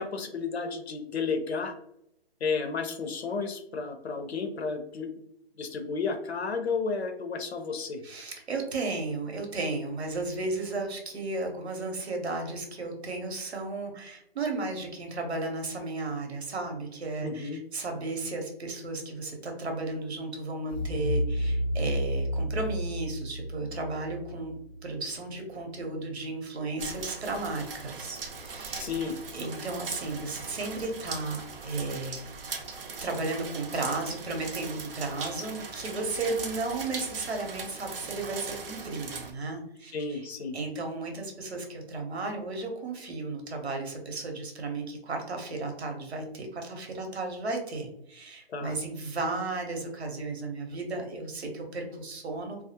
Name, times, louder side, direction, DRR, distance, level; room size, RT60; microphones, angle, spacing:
voice 1, 0.0-1.7 2.4-5.1 5.6-8.0 17.2-17.6 28.7-29.2 39.9-40.6 48.5-48.7, left 4 dB, 85° left, 5 dB, 0.7 m, -32 dB
voice 2, 8.0-24.5 24.8-28.9 29.3-32.2 33.0-40.3 40.5-52.6, right 3 dB, 90° right, 3 dB, 0.9 m, -34 dB
sound 1, 20.7-25.6, equal, 20° left, 0.5 m, -31 dB
sound 2, 26.8-39.3, right 4 dB, 60° right, 0.5 m, -40 dB
2.3 x 2.0 x 2.8 m, 0.75 s
hypercardioid pair, 175°, 31 cm